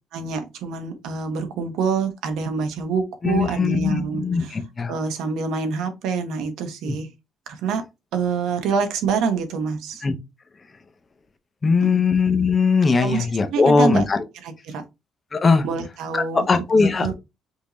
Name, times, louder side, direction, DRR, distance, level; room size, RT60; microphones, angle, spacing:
voice 1, 0.1-4.6 4.9-7.1 7.5-7.8 8.1-10.0 11.8-12.0 13.0-14.1 14.3-14.8 15.6-17.1, right 5 dB, 80° right, 1.0 m, -26 dB
voice 2, 3.2-4.9 6.9-7.0 10.0-10.1 11.6-14.0 15.3-15.6 16.1-17.1, left 4 dB, 25° left, 0.6 m, -19 dB
5.3 x 2.6 x 3.0 m
cardioid pair, 165°, 0 cm